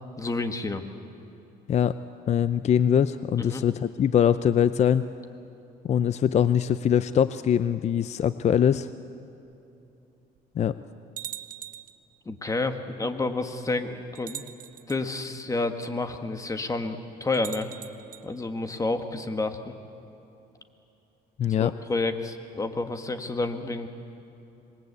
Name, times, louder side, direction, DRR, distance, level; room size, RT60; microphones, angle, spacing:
voice 1, 0.2-0.8 3.4-3.6 12.2-14.4 14.9-17.7 18.2-19.7 21.6-23.9, left 3 dB, 20° left, 8 dB, 1.7 m, -30 dB
voice 2, 2.3-5.1 5.9-8.9 10.6-10.7 21.4-21.7, left 9 dB, 40° left, 14 dB, 0.6 m, -22 dB
sound 1, 9.5-9.6 10.4-10.5 11.2-12.0 13.2-13.3 14.1-15.0 17.3-18.2, right 11 dB, 55° right, 0.9 m, -41 dB
26.0 x 21.0 x 8.3 m, 2.9 s
cardioid pair, 110°, 17 cm